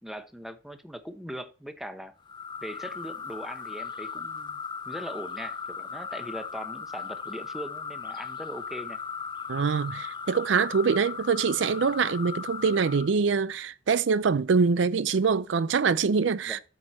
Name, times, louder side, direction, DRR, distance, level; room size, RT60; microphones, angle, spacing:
voice 1, 0.0-2.1 2.6-4.6 4.9-9.0 16.5-16.6, equal, ahead, 1.0 m, -40 dB
sound 1, 2.3-13.1, left 6 dB, 25° left, 0.5 m, -37 dB
voice 2, 9.5-16.6, right 5 dB, 65° right, 0.4 m, -24 dB
8.6 x 6.4 x 4.3 m
head